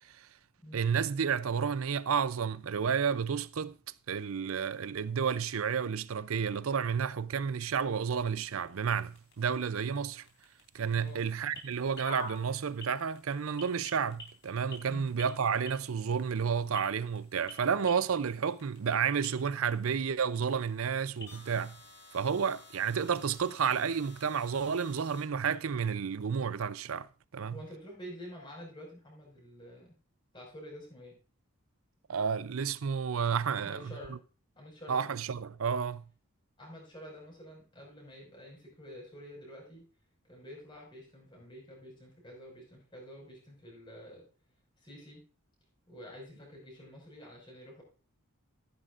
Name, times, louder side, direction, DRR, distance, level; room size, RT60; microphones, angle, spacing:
voice 1, 0.7-3.8 4.1-10.2 10.7-21.8 22.1-27.1 27.3-27.6 32.1-34.2 34.9-36.0, right 6 dB, 70° right, 0.5 m, -31 dB
sound 1, 7.8-25.2, left 1 dB, 55° left, 3.4 m, -51 dB
voice 2, 27.5-29.9 30.3-31.2 33.5-34.2 34.6-35.0 36.6-39.8 40.3-44.2 44.8-45.2 45.9-47.8, equal, 20° left, 5.4 m, -48 dB
13.5 x 11.0 x 2.5 m
head